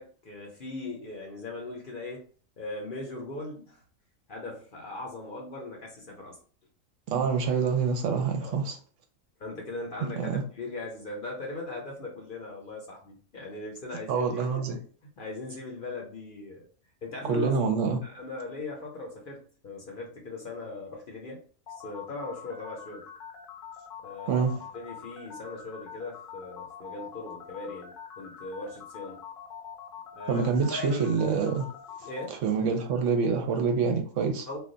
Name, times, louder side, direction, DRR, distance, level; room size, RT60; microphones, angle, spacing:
voice 1, 0.0-2.2 2.6-3.8 4.3-6.4 8.4-8.6 9.4-14.7 15.2-16.7 17.0-17.7 18.0-21.4 21.8-23.1 24.0-24.3 24.7-29.2 30.1-30.4 30.7-31.1 32.0-32.4 34.5-34.6, left 2 dB, 50° left, 0.7 m, -39 dB
voice 2, 7.1-8.8 10.2-10.3 14.1-14.8 17.3-18.0 24.3-24.6 30.3-31.7 32.4-34.5, right 5 dB, 70° right, 0.9 m, -26 dB
sound 1, 21.7-32.3, left 8 dB, 75° left, 0.9 m, -44 dB
2.4 x 2.3 x 3.7 m
omnidirectional pair, 1.4 m